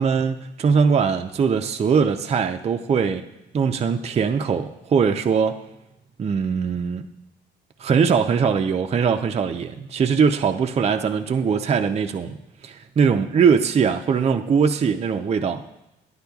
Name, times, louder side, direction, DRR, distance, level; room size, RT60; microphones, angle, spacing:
voice 1, 0.0-3.3 3.5-5.6 6.2-7.0 7.8-12.4 12.6-15.6, right 6 dB, 35° right, 5 dB, 0.4 m, -21 dB
11.5 x 9.5 x 2.3 m, 0.93 s
cardioid pair, 90°, 20 cm